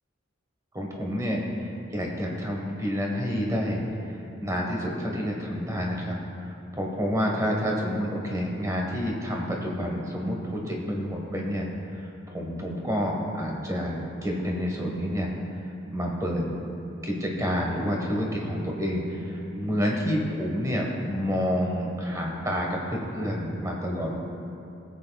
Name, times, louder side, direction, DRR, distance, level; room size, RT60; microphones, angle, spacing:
voice 1, 0.7-3.8 4.4-14.0 14.2-15.3 15.6-16.4 17.0-24.2, equal, 15° right, -1 dB, 1.3 m, -29 dB
19.5 x 8.1 x 2.3 m, 2.7 s
head